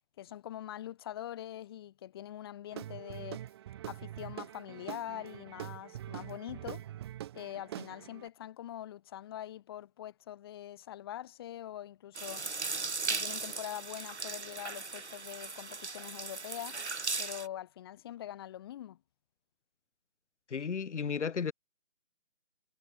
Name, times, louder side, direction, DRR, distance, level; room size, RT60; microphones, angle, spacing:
voice 1, 0.2-3.5 3.9-6.8 7.3-12.5 13.1-16.8 17.2-19.0, left 12 dB, 20° left, 3.1 m, -43 dB
Guitar / Drum, 2.7-8.3, right 12 dB, 20° right, 4.0 m, -44 dB
sound 1, 12.1-17.5, right 3 dB, 65° right, 3.4 m, -37 dB
voice 2, 20.5-21.5, left 6 dB, 70° left, 0.7 m, -33 dB
figure-of-eight pair, 155°, 37 cm